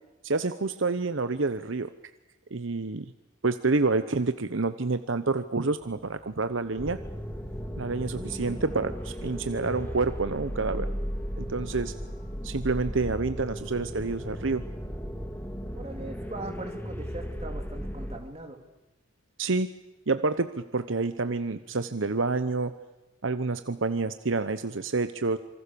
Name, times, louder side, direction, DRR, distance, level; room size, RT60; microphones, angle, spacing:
voice 1, 0.2-1.9 2.5-3.1 3.4-7.0 7.8-10.9 11.4-11.9 12.4-14.6 19.4-19.7 20.1-22.7 23.2-25.4, right 3 dB, 70° right, 11 dB, 0.9 m, -28 dB
sound 1, 5.8-12.3, right 1 dB, 30° left, 2.6 m, -50 dB
sound 2, 6.8-18.2, equal, 10° left, 2.0 m, -36 dB
voice 2, 11.4-11.8 15.7-18.6, right 2 dB, 30° right, 4 dB, 3.1 m, -41 dB
27.0 x 24.0 x 7.0 m, 1.0 s
head